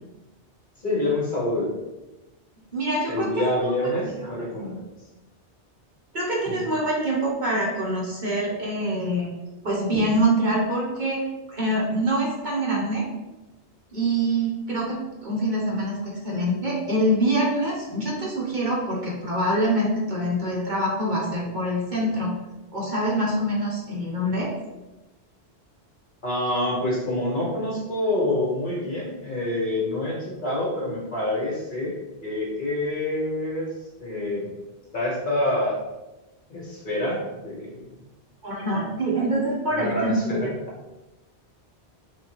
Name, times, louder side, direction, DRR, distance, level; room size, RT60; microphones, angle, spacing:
voice 1, 0.8-1.7 3.1-4.8 6.5-6.7 26.2-33.7 34.0-34.5 34.9-35.8 36.5-37.9 39.7-40.5, left 1 dB, 50° left, -4 dB, 1.2 m, -27 dB
voice 2, 2.7-3.4 6.1-9.3 9.6-11.2 11.5-13.0 13.9-22.3 22.7-24.5 38.4-40.2, right 1 dB, 45° right, -5 dB, 1.1 m, -25 dB
4.2 x 3.4 x 2.9 m, 1.0 s
omnidirectional pair, 1.2 m